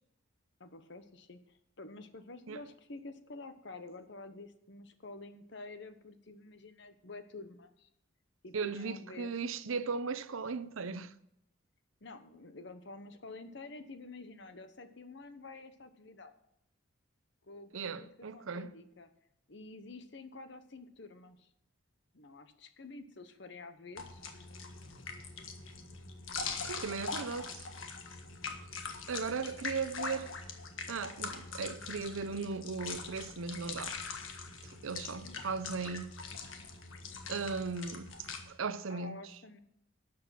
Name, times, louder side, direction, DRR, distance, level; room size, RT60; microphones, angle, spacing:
voice 1, 0.6-7.9 8.4-9.3 12.0-16.3 17.4-19.1 19.5-21.5 22.1-24.2 35.2-35.4 38.9-39.6, left 3 dB, 55° left, 1.0 m, -49 dB
voice 2, 8.5-11.1 17.7-18.7 26.6-27.7 29.1-30.3 30.9-34.0 34.6-36.1 37.3-38.1 38.4-39.2, right 4 dB, 80° right, 0.6 m, -37 dB
sound 1, 24.0-38.4, left 4 dB, 75° left, 1.5 m, -43 dB
12.0 x 7.7 x 5.9 m
head